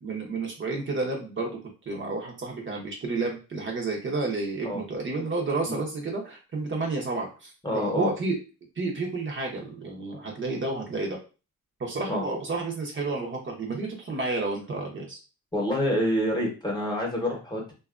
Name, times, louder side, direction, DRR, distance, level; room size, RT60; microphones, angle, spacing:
voice 1, 0.0-1.6 1.9-8.4 8.8-11.2 11.8-15.2, right 3 dB, 40° right, 0 dB, 0.8 m, -31 dB
voice 2, 7.6-8.1 12.1-12.2 15.5-17.7, left 1 dB, 15° left, -1 dB, 1.0 m, -27 dB
2.6 x 2.3 x 2.4 m, 0.33 s
cardioid pair, 90°, 30 cm